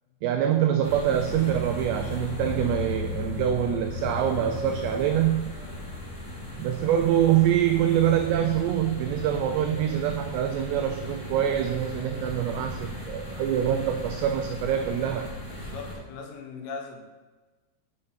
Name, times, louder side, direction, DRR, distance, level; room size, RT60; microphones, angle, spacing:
voice 1, 0.2-5.5 6.6-15.3, right 10 dB, 90° right, 6 dB, 2.4 m, -25 dB
Marylebone - Taxis outside station, 0.8-15.9, left 2 dB, 30° left, 2.1 m, -36 dB
voice 2, 15.5-17.0, left 4 dB, 85° left, 3 dB, 3.6 m, -39 dB
6.6 x 6.4 x 5.6 m, 1.2 s
omnidirectional pair, 5.5 m